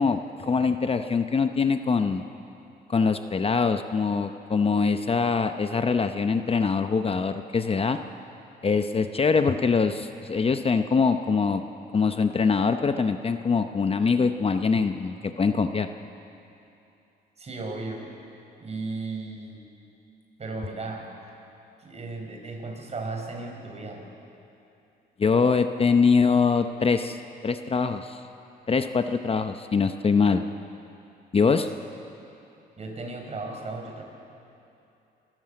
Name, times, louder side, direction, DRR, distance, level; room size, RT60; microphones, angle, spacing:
voice 1, 0.0-2.2 2.9-8.0 8.6-11.6 11.9-15.9 25.2-27.2 27.4-28.2 28.7-30.4 31.3-31.7, left 5 dB, 35° left, 8 dB, 0.8 m, -23 dB
voice 2, 17.4-18.1 18.6-19.6 20.4-21.1 21.8-24.1 31.4-31.6 32.8-34.0, right 3 dB, 40° right, 2 dB, 4.7 m, -35 dB
25.5 x 13.5 x 7.8 m, 2.8 s
cardioid pair, 95°, 18 cm